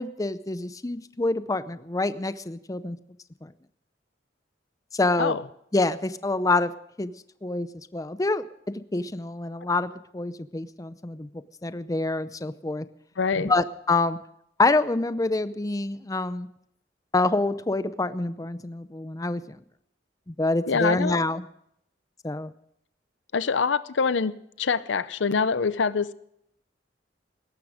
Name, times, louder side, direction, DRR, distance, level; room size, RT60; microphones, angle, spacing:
voice 1, 0.0-3.0 3.4-3.5 4.9-5.4 5.7-6.7 7.0-7.1 7.4-11.3 11.6-12.9 13.4-14.2 14.6-16.5 17.1-19.6 20.3-21.4 22.2-22.5, left 2 dB, 20° left, 0.6 m, -26 dB
voice 2, 13.2-13.5 20.7-21.2 23.3-26.1, left 5 dB, 85° left, 0.6 m, -25 dB
18.0 x 13.5 x 5.0 m
head